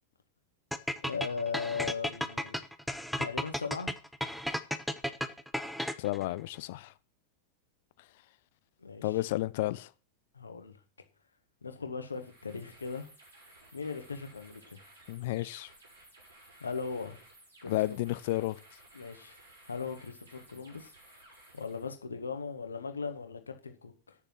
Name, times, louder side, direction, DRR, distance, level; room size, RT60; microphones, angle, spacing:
sound 1, 0.7-6.2, equal, ahead, 0.8 m, -34 dB
voice 1, 1.0-2.6 3.2-4.0 8.8-9.2 10.3-10.8 11.6-13.1 13.7-14.8 16.6-17.2 17.6-17.8 18.9-19.4 19.7-20.9 21.5-24.2, left 5 dB, 75° left, 1.9 m, -38 dB
voice 2, 6.0-6.9 9.0-9.9 15.1-15.7 17.7-18.6, left 17 dB, 50° left, 0.7 m, -32 dB
sound 2, 12.1-22.0, right 1 dB, 65° right, 7.1 m, -57 dB
10.0 x 6.8 x 5.9 m
figure-of-eight pair, 90°, 0 cm